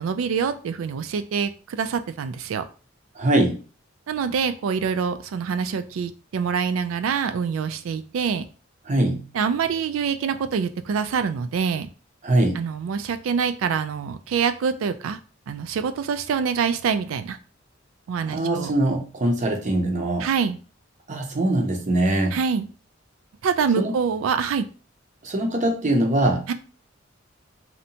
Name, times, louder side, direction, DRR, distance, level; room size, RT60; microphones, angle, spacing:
voice 1, 0.0-2.6 4.1-8.5 9.3-11.9 12.5-15.2 15.5-17.4 18.1-18.7 20.2-20.6 22.3-22.7 23.4-24.6 26.5-26.6, right 6 dB, 90° right, 11 dB, 0.3 m, -25 dB
voice 2, 3.2-3.6 8.9-9.3 12.2-12.6 18.3-20.3 21.1-22.4 23.8-23.9 25.2-26.5, right 1 dB, 40° right, 4 dB, 0.5 m, -22 dB
2.7 x 2.1 x 2.7 m, 0.37 s
head